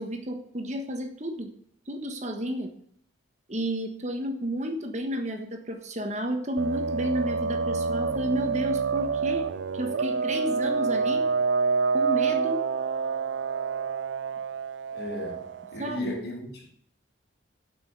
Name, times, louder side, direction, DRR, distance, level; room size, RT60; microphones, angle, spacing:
voice 1, 0.0-1.5 1.9-2.7 3.5-11.2 11.9-12.6 15.8-16.2, equal, 35° right, 1.4 m, -31 dB
sound 1, 6.6-15.8, right 5 dB, 70° right, 0.4 m, -27 dB
voice 2, 14.9-15.4 15.7-16.7, left 1 dB, 55° left, 2.7 m, -35 dB
8.0 x 6.2 x 8.0 m
head